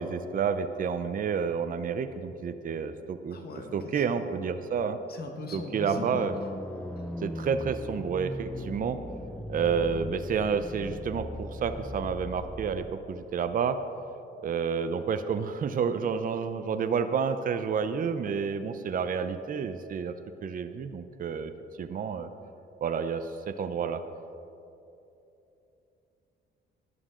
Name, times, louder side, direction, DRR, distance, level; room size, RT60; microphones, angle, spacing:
voice 1, 0.0-3.4 3.7-5.0 5.5-6.4 7.2-9.0 9.5-13.8 14.4-20.1 20.4-21.5 21.8-22.3 22.8-24.0, right 6 dB, 45° right, 9 dB, 0.6 m, -30 dB
voice 2, 3.3-4.3 5.1-6.2 7.0-7.1, left 3 dB, 50° left, 4 dB, 1.5 m, -40 dB
sound 1, 5.9-12.9, left 1 dB, 5° left, 0.5 m, -39 dB
13.5 x 11.0 x 3.8 m, 2.8 s
cardioid pair, 90°, 20 cm